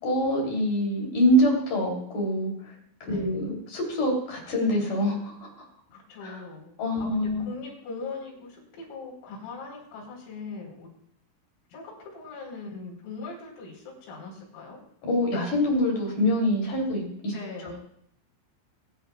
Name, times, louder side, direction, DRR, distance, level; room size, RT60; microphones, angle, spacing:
voice 1, 0.0-2.7 3.0-5.6 6.2-6.4 6.8-7.5 15.0-17.3 17.6-17.8, equal, 45° left, -1 dB, 4.2 m, -25 dB
voice 2, 3.1-3.4 5.9-10.9 11.7-14.8 17.3-17.8, left 3 dB, 75° left, -2 dB, 6.8 m, -40 dB
24.5 x 10.5 x 2.4 m, 0.70 s
omnidirectional pair, 6.0 m